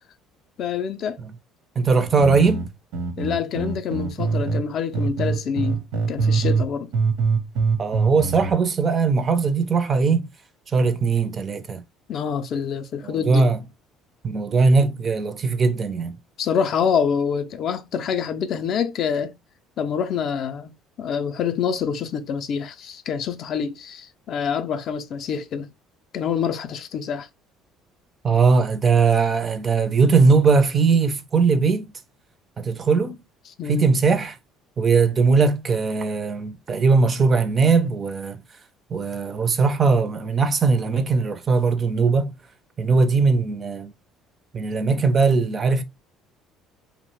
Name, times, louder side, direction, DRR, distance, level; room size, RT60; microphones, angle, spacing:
voice 1, 0.6-1.2 3.2-5.8 6.1-6.9 12.1-13.4 16.4-19.3 19.8-20.7 21.0-25.7 26.1-27.3 33.6-33.9, left 7 dB, 50° left, 0.3 m, -26 dB
voice 2, 1.8-2.7 7.8-10.3 10.7-11.8 13.0-13.6 14.2-16.2 28.2-31.9 32.6-33.2 33.7-34.4 34.8-38.4 38.9-42.3 42.8-43.9 44.5-45.8, right 4 dB, 30° right, 0.3 m, -20 dB
sound 1, 2.1-4.6 4.9-6.7 6.9-8.5, right 4 dB, 80° right, 0.7 m, -23 dB
2.8 x 2.1 x 2.9 m
cardioid pair, 145°, 0 cm